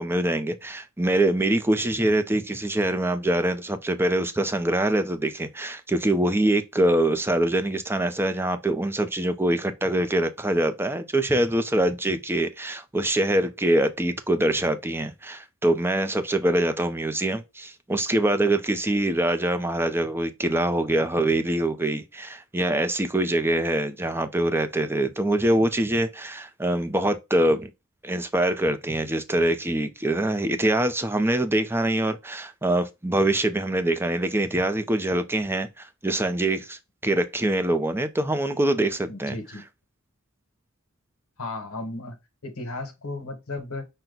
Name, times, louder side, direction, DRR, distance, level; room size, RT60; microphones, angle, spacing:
voice 1, 0.0-27.7 28.0-39.4, right 1 dB, 10° right, 0.6 m, -24 dB
voice 2, 39.1-39.6 41.4-43.9, left 2 dB, 80° left, 1.3 m, -35 dB
5.9 x 2.2 x 3.9 m
head